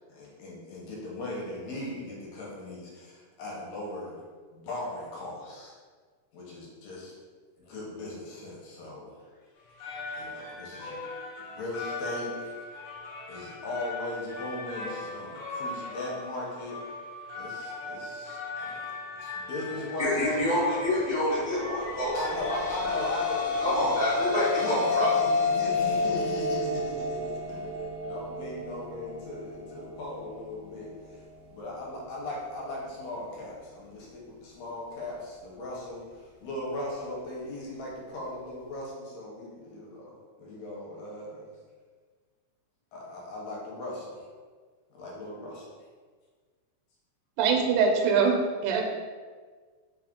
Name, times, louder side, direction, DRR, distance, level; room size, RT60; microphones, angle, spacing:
voice 1, 0.1-4.2 4.5-5.7 6.3-7.1 7.6-9.2 10.2-11.0 11.6-12.6 13.3-16.8 17.3-18.9 19.2-20.5 22.1-31.2 31.5-41.5 42.9-44.3 44.9-45.6, left 2 dB, 75° left, -4 dB, 2.0 m, -38 dB
sound 1, 9.6-25.5, left 2 dB, 90° left, 1.2 m, -40 dB
voice 2, 20.0-22.1 23.6-25.1, equal, 65° right, -12 dB, 0.5 m, -27 dB
sound 2, 22.0-30.5, left 4 dB, 45° left, 1.0 m, -30 dB
voice 3, 47.4-48.9, right 5 dB, 90° right, 3 dB, 2.1 m, -23 dB
4.7 x 2.4 x 3.6 m, 1.5 s
omnidirectional pair, 3.5 m